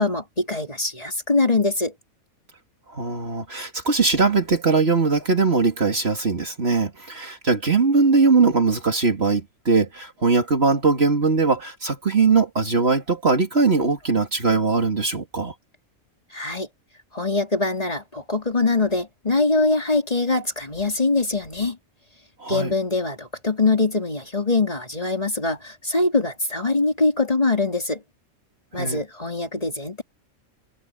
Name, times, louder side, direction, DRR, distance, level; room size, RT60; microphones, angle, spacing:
voice 1, 0.0-1.9 16.3-16.7 17.1-21.8 22.5-28.0 28.7-30.0, left 3 dB, 25° left, 3.2 m, -23 dB
voice 2, 2.9-15.5 22.4-22.7 28.7-29.0, right 4 dB, 45° right, 2.6 m, -20 dB
omnidirectional pair, 1.5 m